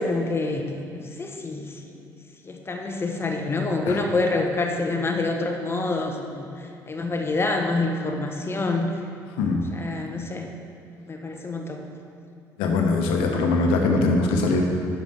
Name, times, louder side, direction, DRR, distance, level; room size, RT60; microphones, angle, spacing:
voice 1, 0.0-2.0 2.4-8.9 9.7-10.5 11.1-11.8, left 2 dB, 30° left, 3 dB, 0.9 m, -27 dB
voice 2, 12.6-14.6, left 3 dB, 85° left, 2 dB, 0.9 m, -21 dB
6.6 x 5.3 x 5.6 m, 2.5 s
supercardioid pair, 75°, 9 cm